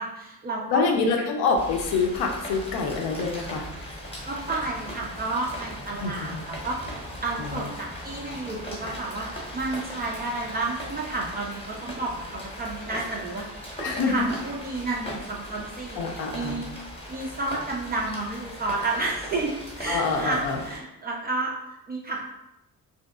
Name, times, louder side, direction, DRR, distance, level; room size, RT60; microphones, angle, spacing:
voice 1, 0.0-1.0 4.0-16.7 17.1-22.3, right 3 dB, 20° right, -2 dB, 0.3 m, -31 dB
voice 2, 0.7-3.7 6.0-6.4 7.4-7.6 13.8-14.3 16.0-16.6 19.9-20.6, left 4 dB, 55° left, 2 dB, 0.6 m, -26 dB
Rain, 1.6-20.8, equal, 10° left, 0.8 m, -39 dB
2.7 x 2.5 x 2.3 m, 0.89 s
figure-of-eight pair, 45°, 48 cm